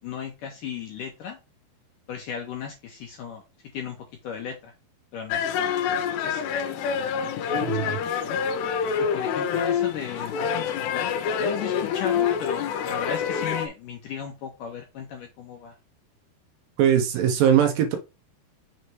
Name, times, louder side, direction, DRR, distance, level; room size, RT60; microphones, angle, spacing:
voice 1, 0.0-1.4 2.1-3.4 3.7-4.7 5.1-6.5 6.9-8.4 9.0-11.1 11.4-15.8, left 8 dB, 75° left, 2.1 m, -36 dB
sound 1, 5.3-13.7, left 7 dB, 90° left, 2.9 m, -26 dB
voice 2, 7.5-8.0 16.8-18.0, right 9 dB, 75° right, 2.3 m, -21 dB
6.6 x 3.2 x 4.5 m
omnidirectional pair, 4.7 m